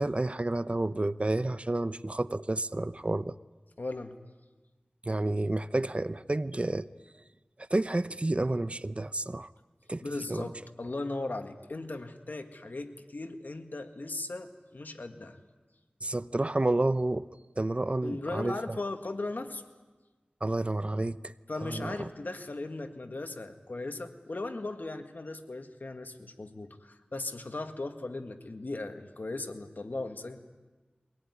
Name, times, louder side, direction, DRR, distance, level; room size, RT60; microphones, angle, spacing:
voice 1, 0.0-3.4 5.1-6.9 7.7-9.5 9.9-10.5 16.0-17.3 17.6-18.6 20.4-21.3 21.6-21.9, right 2 dB, 40° right, 14 dB, 0.7 m, -30 dB
voice 2, 3.8-4.1 10.0-15.4 18.0-19.6 21.5-30.4, left 2 dB, 75° left, 6 dB, 1.8 m, -37 dB
23.5 x 18.5 x 9.7 m, 1.3 s
wide cardioid pair, 40°, 3 cm